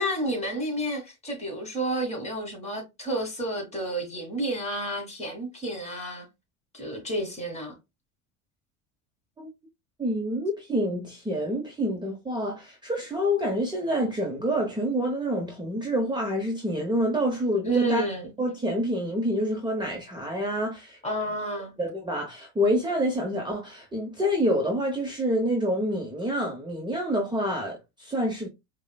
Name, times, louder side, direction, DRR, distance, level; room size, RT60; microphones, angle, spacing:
voice 1, 0.0-6.3 6.7-7.8 17.7-18.3 21.0-21.7, right 1 dB, 20° left, 1.7 m, -30 dB
voice 2, 10.0-18.1 18.4-21.0 21.8-28.5, equal, 10° right, 0.8 m, -27 dB
4.7 x 2.2 x 2.3 m
hypercardioid pair, 80°, 37 cm